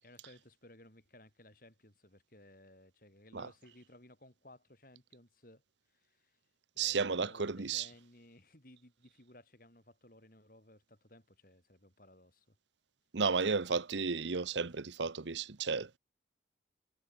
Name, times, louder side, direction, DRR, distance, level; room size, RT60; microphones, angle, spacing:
voice 1, 0.0-5.6 5.9-6.4 6.7-12.6, left 1 dB, 50° left, 6.7 m, -59 dB
voice 2, 6.8-7.9 13.1-16.0, right 5 dB, 90° right, 1.0 m, -33 dB
head